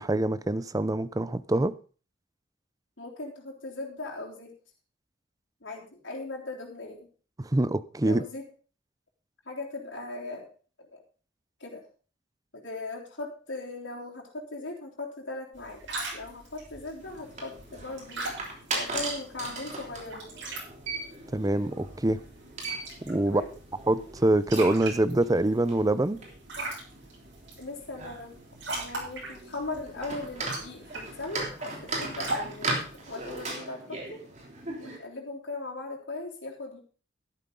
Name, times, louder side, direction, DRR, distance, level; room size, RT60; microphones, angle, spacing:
voice 1, 0.0-1.8 7.4-8.2 21.3-22.2 23.0-23.4 23.9-26.2, right 1 dB, 20° right, 0.5 m, -25 dB
voice 2, 3.0-4.6 5.6-7.1 8.0-8.4 9.5-10.5 10.8-11.0 11.6-11.9 12.5-15.8 16.1-18.3 18.7-20.4 23.3-23.5 27.6-28.4 28.6-34.3 34.8-36.8, left 2 dB, 80° left, 3.5 m, -39 dB
sound 1, 15.5-33.5, right 2 dB, 80° right, 7.6 m, -41 dB
sound 2, 17.0-35.0, right 3 dB, 40° right, 3.3 m, -39 dB
12.5 x 11.5 x 3.9 m
head